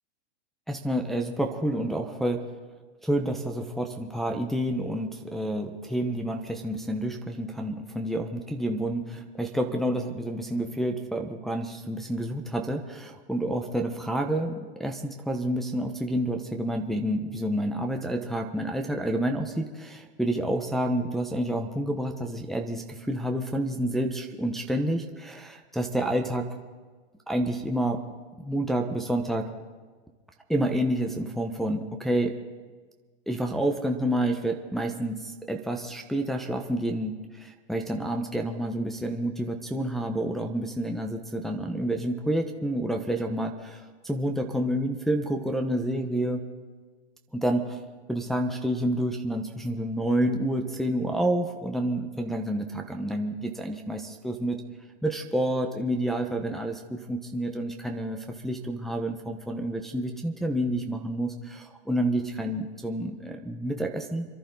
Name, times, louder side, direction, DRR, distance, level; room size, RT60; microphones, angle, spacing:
voice 1, 0.7-2.4 3.0-26.5 27.3-28.0 28.4-29.5 30.5-32.3 33.3-46.4 47.3-47.8 48.1-54.6 55.0-64.4, right 1 dB, ahead, 2 dB, 0.9 m, -29 dB
27.0 x 11.5 x 3.9 m, 1.4 s
hypercardioid pair, 125°, 33 cm